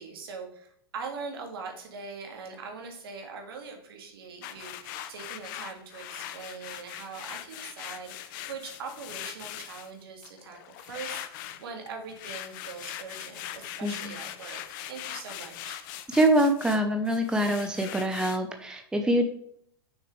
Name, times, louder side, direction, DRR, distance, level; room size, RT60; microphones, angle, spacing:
voice 1, 0.0-14.6 14.9-15.8, right 5 dB, 65° right, 3 dB, 1.9 m, -42 dB
sound 1, 4.4-9.9 10.2-16.8 17.1-18.4, left 12 dB, 50° left, 0.7 m, -41 dB
voice 2, 13.8-14.2 16.1-19.2, right 1 dB, 5° right, 5 dB, 0.7 m, -25 dB
6.7 x 6.3 x 3.2 m, 0.66 s
figure-of-eight pair, 100°, 13 cm